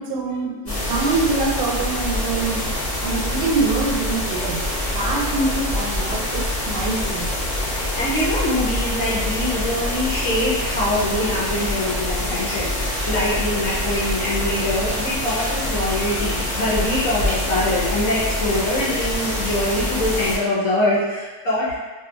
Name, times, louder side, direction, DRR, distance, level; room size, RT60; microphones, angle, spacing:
voice 1, 0.0-2.6 3.0-4.6 4.9-7.3, right 3 dB, 90° right, -1 dB, 1.2 m, -24 dB
sound 1, 0.7-20.4, left 1 dB, 35° left, 0.7 m, -25 dB
voice 2, 7.8-21.8, left 1 dB, 70° left, -7 dB, 0.8 m, -23 dB
2.6 x 2.5 x 2.5 m, 1.3 s
omnidirectional pair, 1.8 m